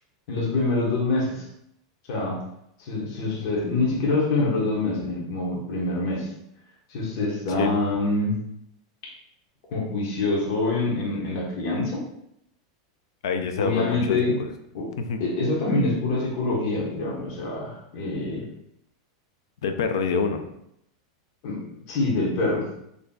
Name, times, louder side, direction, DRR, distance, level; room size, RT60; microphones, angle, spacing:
voice 1, 0.3-1.4 2.1-2.4 2.8-6.3 6.9-8.4 9.7-12.0 13.6-14.4 14.7-14.9 15.2-18.5 21.4-21.6 21.9-22.7, left 2 dB, 50° left, -3 dB, 1.1 m, -25 dB
voice 2, 13.2-14.5 15.0-15.2 19.6-20.4, left 5 dB, 85° left, 7 dB, 0.5 m, -26 dB
3.9 x 3.2 x 2.3 m, 0.77 s
supercardioid pair, 160°, 2 cm